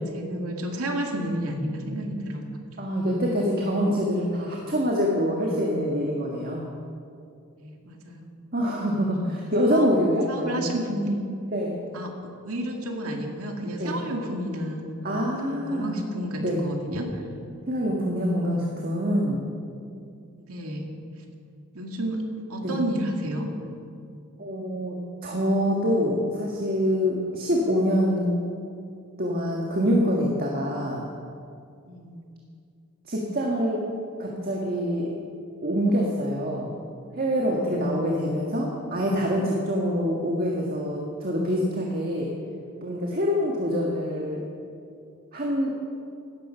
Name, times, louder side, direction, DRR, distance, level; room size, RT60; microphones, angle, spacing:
voice 1, 0.1-2.6 7.6-8.3 9.2-9.9 10.3-11.3 11.9-12.1 12.4-15.4 15.7-17.2 17.8-17.9 20.5-20.9 21.7-22.2 22.5-23.5 31.9-32.2, right 1 dB, 85° right, 2 dB, 2.2 m, -31 dB
voice 2, 2.8-6.7 8.5-10.8 11.5-11.8 13.8-14.0 15.0-15.9 16.4-16.6 17.7-19.4 22.6-22.8 24.4-25.0 25.2-28.3 29.2-31.0 33.1-33.9 34.2-35.1 35.6-36.8 37.1-42.3 42.8-44.4 45.3-45.7, equal, 45° right, -2 dB, 1.7 m, -25 dB
17.0 x 13.0 x 5.7 m, 2.4 s
head